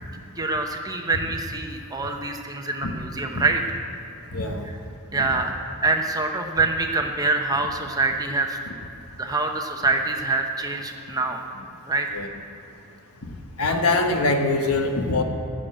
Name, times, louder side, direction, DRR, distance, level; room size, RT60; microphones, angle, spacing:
voice 1, 0.4-3.6 3.9-4.1 5.1-5.6 5.8-8.6 9.2-11.4 11.9-12.1, right 3 dB, 15° right, 3 dB, 0.8 m, -25 dB
voice 2, 4.3-4.7 5.1-5.3 12.1-12.3 13.3-15.2, left 2 dB, 80° left, 4 dB, 1.3 m, -23 dB
15.5 x 6.5 x 8.8 m, 2.9 s
head